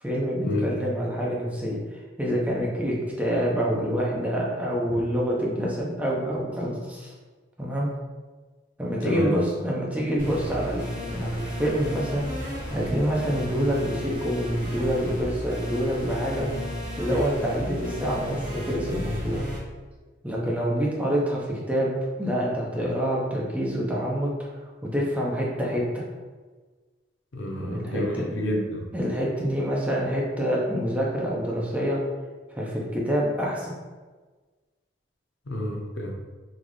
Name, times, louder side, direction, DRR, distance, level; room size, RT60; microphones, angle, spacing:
voice 1, 0.0-7.1 7.6-7.9 8.8-10.8 11.1-12.3 12.7-16.5 17.0-19.4 20.2-24.3 24.8-26.1 27.6-28.3 28.9-32.0 32.5-33.7, equal, 10° right, -4 dB, 0.6 m, -27 dB
sound 1, 10.2-19.6, equal, 45° right, 1.1 m, -34 dB
voice 2, 27.3-28.8 35.5-36.1, left 1 dB, 85° left, 0 dB, 0.6 m, -29 dB
3.9 x 2.4 x 3.1 m, 1.4 s
head